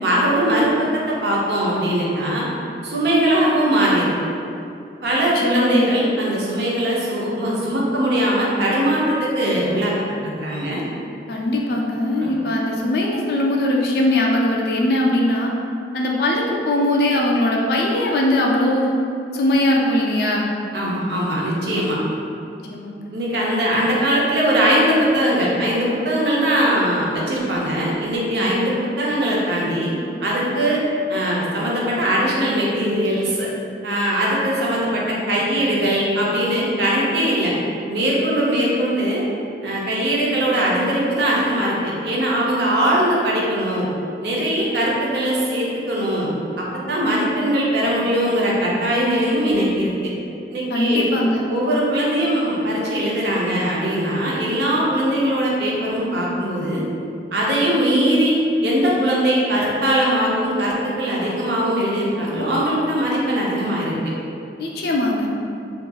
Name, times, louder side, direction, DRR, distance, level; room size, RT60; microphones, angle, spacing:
voice 1, 0.0-2.4 2.8-4.1 5.0-9.9 10.2-10.8 12.2-12.3 20.7-22.0 23.1-29.9 30.2-30.8 31.1-33.5 33.8-37.5 37.9-39.3 39.6-43.9 44.2-46.3 46.6-49.9 50.5-51.1 51.5-56.8 57.3-58.3 58.6-63.9, right 1 dB, 75° right, -4 dB, 0.6 m, -20 dB
voice 2, 5.3-5.9 11.3-15.5 15.9-19.0 19.3-20.5 22.7-23.1 50.7-51.4 64.6-65.3, left 1 dB, 65° left, -2 dB, 0.4 m, -20 dB
2.8 x 2.5 x 2.3 m, 2.6 s
head